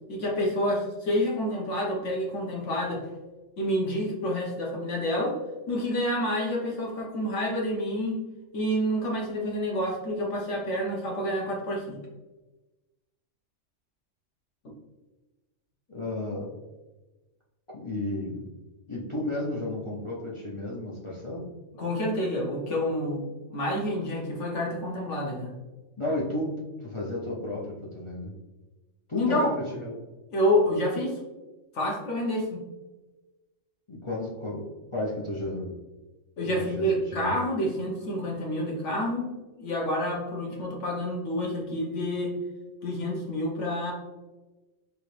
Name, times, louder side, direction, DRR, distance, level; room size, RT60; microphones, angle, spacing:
voice 1, 0.1-3.1 3.6-5.4 5.7-8.2 8.5-12.0 21.7-25.5 29.2-29.5 30.3-31.1 31.7-32.6 36.4-39.3 39.6-42.3 42.8-43.9, equal, 70° left, -2 dB, 1.4 m, -28 dB
voice 2, 15.9-16.5 17.7-18.4 18.9-21.5 26.0-28.3 29.1-29.9 33.9-34.7 34.9-35.7 36.4-37.3, left 1 dB, 30° left, -6 dB, 0.6 m, -32 dB
4.9 x 3.1 x 3.2 m, 1.2 s
omnidirectional pair, 1.3 m